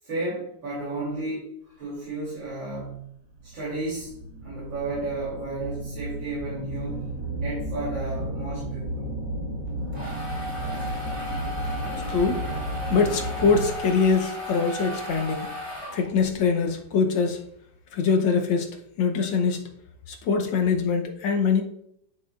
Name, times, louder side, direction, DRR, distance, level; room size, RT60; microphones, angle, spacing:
voice 1, 0.0-3.0 3.4-7.1 7.4-9.0 12.0-12.2, right 2 dB, 75° right, -9 dB, 3.9 m, -33 dB
sound 1, 2.5-2.6 3.3-14.0, right 1 dB, 55° right, 2.4 m, -33 dB
sound 2, 9.7-16.4, equal, 15° right, 2.9 m, -35 dB
voice 2, 11.9-12.4 12.9-15.5 15.9-17.4 17.9-18.7 19.0-19.6 20.1-21.6, left 5 dB, 75° left, 4 dB, 1.7 m, -23 dB
10.5 x 6.0 x 2.5 m, 0.72 s
omnidirectional pair, 2.1 m